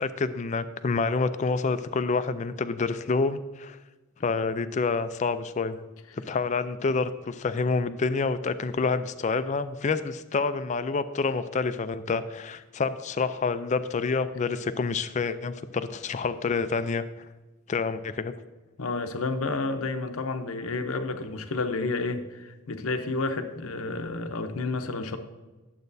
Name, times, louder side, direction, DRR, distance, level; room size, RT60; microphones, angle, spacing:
voice 1, 0.0-3.8 4.2-5.8 6.1-17.0 17.7-18.3, left 4 dB, 35° left, 12 dB, 0.3 m, -28 dB
voice 2, 18.8-25.2, left 3 dB, 75° left, 7 dB, 0.7 m, -30 dB
11.0 x 7.7 x 2.7 m, 1.2 s
head